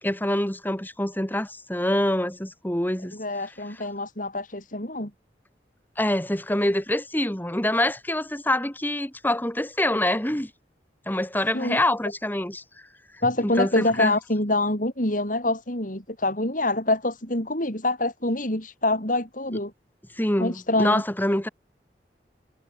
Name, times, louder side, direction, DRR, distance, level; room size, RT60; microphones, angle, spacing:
voice 1, 0.0-3.1 6.0-10.5 11.1-12.6 13.4-14.2 20.2-21.5, left 1 dB, 10° left, 2.4 m, -25 dB
voice 2, 3.1-5.1 11.5-11.8 13.2-19.7 20.4-21.0, left 2 dB, 50° left, 7.7 m, -25 dB
head